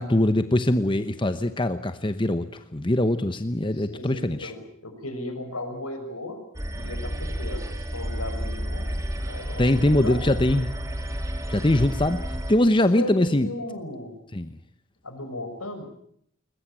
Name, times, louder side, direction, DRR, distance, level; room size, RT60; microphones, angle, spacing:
voice 1, 0.0-4.5 9.6-10.7 11.5-13.5 14.3-14.6, left 1 dB, 20° left, 10 dB, 0.9 m, -22 dB
voice 2, 3.7-6.4 6.7-7.7 7.9-9.6 10.0-10.3 12.9-14.2 15.0-15.8, left 1 dB, 85° left, 6 dB, 6.1 m, -36 dB
sound 1, 6.5-12.5, equal, 15° right, 2.6 m, -31 dB
21.5 x 21.0 x 8.9 m, 0.68 s
head